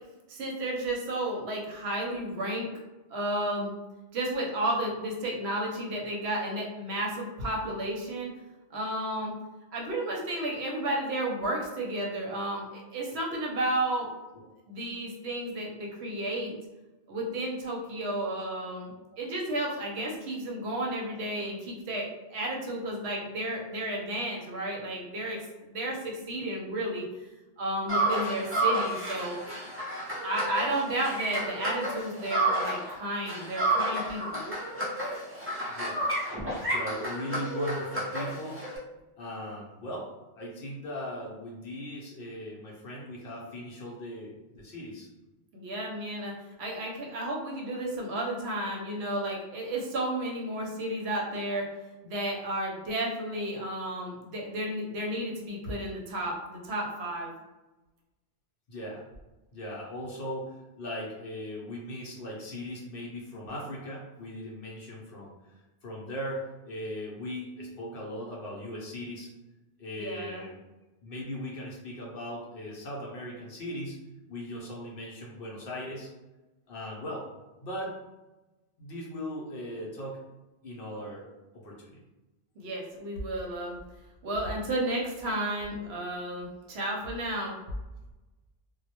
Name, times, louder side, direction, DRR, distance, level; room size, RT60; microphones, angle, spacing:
voice 1, 0.3-2.7 3.1-3.7 4.1-8.3 8.7-9.3 9.7-14.1 14.7-16.5 17.1-27.1 27.6-29.3 30.2-34.4 45.5-46.3 46.6-51.7 52.0-57.4 70.0-70.4 82.6-83.8 84.2-87.6, right 1 dB, 70° right, -1 dB, 0.8 m, -32 dB
sound 1, 27.9-32.9 33.2-38.8, right 1 dB, 20° right, 0.4 m, -31 dB
voice 2, 36.7-38.6 39.2-40.1 40.4-45.1 58.7-59.0 59.5-69.3 69.8-70.6 71.0-74.0 74.3-76.1 76.7-77.2 77.6-77.9 78.8-80.2 80.6-81.2 81.6-82.0, equal, 60° left, -3 dB, 0.7 m, -38 dB
2.1 x 2.0 x 2.8 m, 1.1 s
omnidirectional pair, 1.2 m